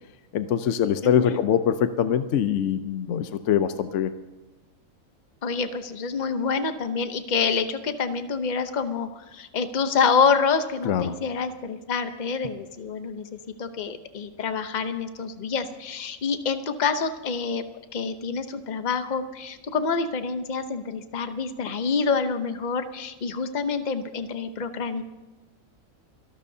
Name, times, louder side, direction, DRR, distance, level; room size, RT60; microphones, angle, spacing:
voice 1, 0.3-4.1 10.9-11.1, left 9 dB, 65° left, 10 dB, 1.0 m, -23 dB
voice 2, 1.0-1.4 5.4-17.6 17.9-25.0, left 5 dB, 35° left, 9 dB, 0.9 m, -27 dB
29.0 x 12.0 x 2.8 m, 1.1 s
omnidirectional pair, 1.4 m